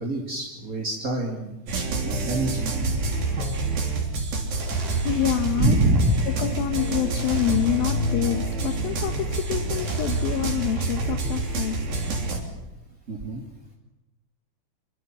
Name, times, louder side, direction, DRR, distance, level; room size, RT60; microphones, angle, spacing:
voice 1, 0.0-1.5 2.0-3.1 5.6-6.3 11.2-11.3 13.1-13.4, right 1 dB, 25° right, -1 dB, 2.0 m, -25 dB
sound 1, 1.7-12.4, right 2 dB, 55° right, 5.1 m, -27 dB
voice 2, 5.0-5.8 6.4-11.8, left 12 dB, 70° left, 6 dB, 2.5 m, -27 dB
25.5 x 25.5 x 7.6 m, 0.92 s
omnidirectional pair, 5.3 m